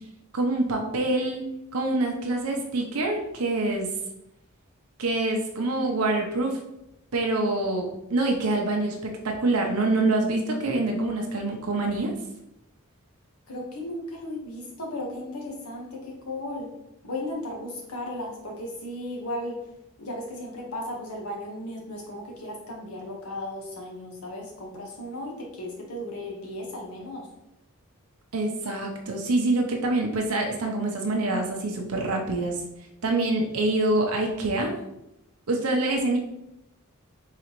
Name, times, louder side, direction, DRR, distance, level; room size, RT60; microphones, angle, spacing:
voice 1, 0.3-1.4 1.7-3.9 5.0-6.6 7.1-12.1 28.3-32.6 33.0-34.8 35.5-36.2, right 2 dB, 85° right, 2 dB, 0.7 m, -25 dB
voice 2, 13.5-16.7 17.0-19.6 20.0-27.3, left 1 dB, 90° left, 0 dB, 1.2 m, -35 dB
4.1 x 3.7 x 3.0 m, 0.86 s
head